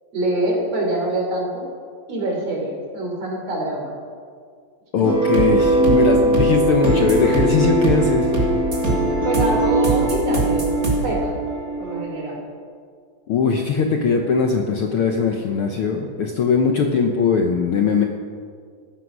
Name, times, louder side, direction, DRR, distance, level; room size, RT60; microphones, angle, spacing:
voice 1, 0.1-1.6 2.1-3.9 9.2-11.3 11.8-12.4, right 1 dB, 55° right, 0 dB, 4.3 m, -25 dB
voice 2, 4.9-8.3 13.3-18.0, left 5 dB, 70° left, 3 dB, 1.3 m, -20 dB
sound 1, 5.0-12.4, right 1 dB, 30° right, 3.1 m, -20 dB
15.0 x 14.0 x 6.2 m, 2.1 s
omnidirectional pair, 3.6 m